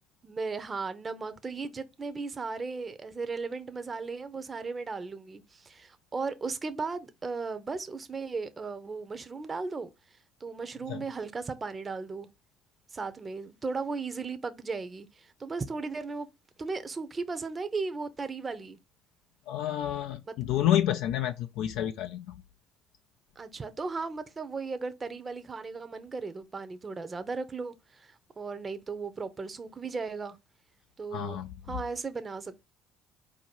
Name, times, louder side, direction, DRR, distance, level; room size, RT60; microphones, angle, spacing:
voice 1, 0.2-9.9 10.4-12.3 12.9-16.3 16.6-18.8 20.3-20.4 23.4-30.4 31.0-32.7, right 4 dB, 30° right, 0.7 m, -36 dB
voice 2, 19.5-22.4 31.1-31.5, left 11 dB, 70° left, 0.3 m, -29 dB
4.5 x 2.7 x 4.3 m
hypercardioid pair, 60°, 0 cm